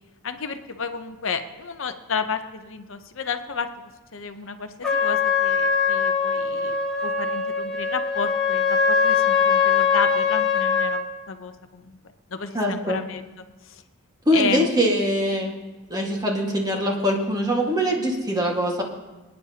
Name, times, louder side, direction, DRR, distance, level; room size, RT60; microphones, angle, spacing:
voice 1, 0.2-12.0 12.3-13.8 14.3-14.7, left 5 dB, 60° left, 8 dB, 0.7 m, -32 dB
Trumpet, 4.8-11.0, left 6 dB, 5° left, 2.0 m, -22 dB
voice 2, 12.5-13.0 14.2-15.5 15.9-18.8, equal, 15° right, -1 dB, 1.7 m, -23 dB
27.0 x 9.7 x 2.9 m, 1.2 s
head